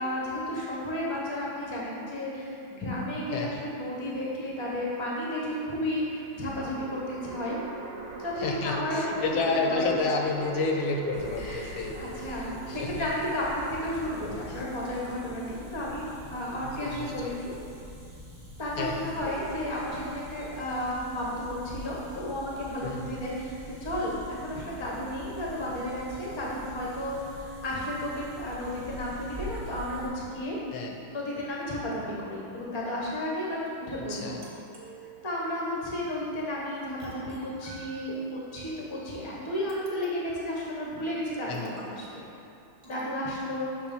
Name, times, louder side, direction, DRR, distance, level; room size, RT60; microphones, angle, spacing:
voice 1, 0.0-7.6 8.2-9.9 11.3-16.0 16.3-17.5 18.6-30.6 31.1-34.4 35.2-42.3 42.8-43.7, left 1 dB, 40° left, -4 dB, 0.3 m, -33 dB
sound 1, 3.6-4.3 6.5-17.9, right 4 dB, 65° right, 1.2 m, -44 dB
voice 2, 8.4-12.0 12.8-13.1 14.5-14.6 16.6-17.3 18.8-19.3 22.8-23.2 30.7-31.0 34.1-34.4 41.5-41.7, left 3 dB, 80° left, 1 dB, 1.4 m, -30 dB
Fabric Wetting, 11.1-30.1, left 1 dB, 15° right, 0.7 m, -45 dB
sound 2, 34.1-35.5 37.0-38.4 39.7-40.5 41.5-42.1 42.8-43.2, right 4 dB, 45° right, 1.2 m, -51 dB
6.0 x 3.3 x 5.2 m, 2.7 s
omnidirectional pair, 2.4 m